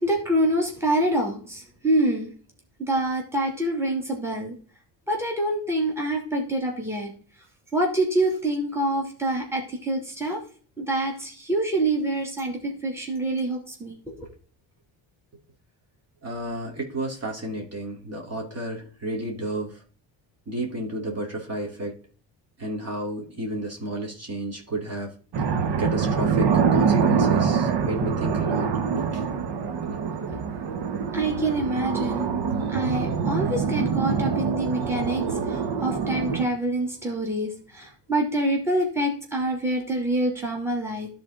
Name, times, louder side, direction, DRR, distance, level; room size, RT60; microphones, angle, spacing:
voice 1, 0.0-2.3 2.8-4.5 5.1-7.1 7.7-10.4 10.8-14.3 31.1-32.3 32.7-41.1, right 1 dB, 5° right, 0 dB, 2.6 m, -26 dB
voice 2, 16.2-19.8 20.5-21.9 22.6-25.1 25.8-28.7 28.9-29.2 30.0-30.4, right 1 dB, 35° right, 0 dB, 2.7 m, -32 dB
sound 1, 25.3-36.5, right 6 dB, 65° right, 1.2 m, -25 dB
12.0 x 4.3 x 3.8 m, 0.41 s
cardioid pair, 90°, 45 cm